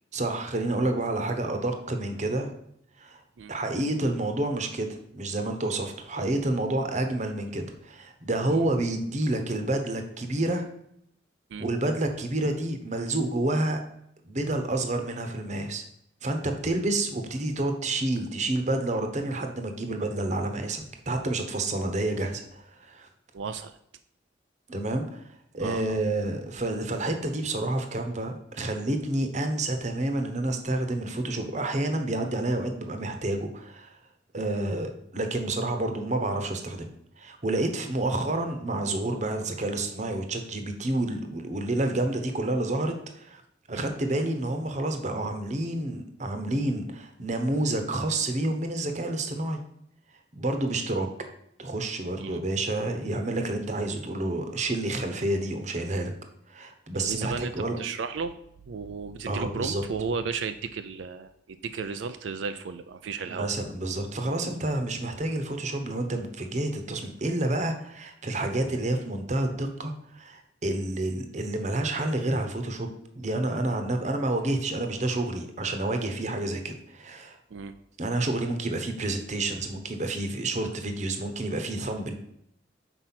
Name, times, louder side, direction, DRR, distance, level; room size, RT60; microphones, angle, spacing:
voice 1, 0.1-2.5 3.0-3.2 3.5-10.6 11.6-13.8 14.2-15.8 16.2-23.1 24.7-25.2 25.5-34.0 34.3-36.9 37.2-43.4 43.7-49.6 50.3-51.1 51.6-56.1 56.5-57.8 59.3-59.8 63.4-77.4 78.0-82.1, right 2 dB, 40° right, 6 dB, 0.9 m, -29 dB
voice 2, 23.3-23.8 25.6-26.0 43.7-43.9 52.2-52.4 56.9-58.4 58.7-63.5 77.5-77.7, right 5 dB, 90° right, 10 dB, 0.4 m, -34 dB
6.0 x 4.5 x 5.7 m, 0.74 s
head